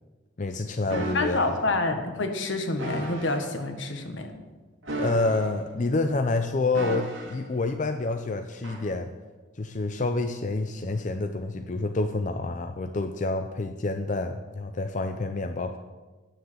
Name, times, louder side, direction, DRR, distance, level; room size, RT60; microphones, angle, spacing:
voice 1, 0.4-1.4 5.0-9.1 9.6-15.8, left 2 dB, 40° left, 6 dB, 0.5 m, -28 dB
sound 1, 0.9-1.5 2.8-3.4 4.8-5.7 6.7-7.5 8.6-8.9, right 1 dB, 85° right, 2.3 m, -34 dB
voice 2, 1.1-4.3, left 2 dB, 75° left, 6 dB, 1.4 m, -28 dB
9.4 x 6.7 x 7.8 m, 1.3 s
head